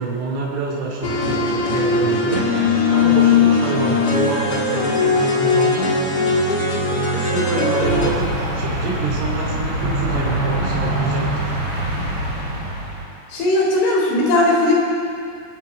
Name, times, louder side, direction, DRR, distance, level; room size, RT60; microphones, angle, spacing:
voice 1, 0.0-2.5 2.9-5.9 6.7-11.5, right 3 dB, 85° right, -3 dB, 5.4 m, -27 dB
sound 1, 1.0-8.1, left 4 dB, 40° left, 1.4 m, -19 dB
sound 2, 7.8-13.0, right 1 dB, 25° right, 6.6 m, -24 dB
voice 2, 13.3-14.8, left 1 dB, 75° left, -2 dB, 6.4 m, -17 dB
25.5 x 18.0 x 5.7 m, 2.5 s
omnidirectional pair, 5.6 m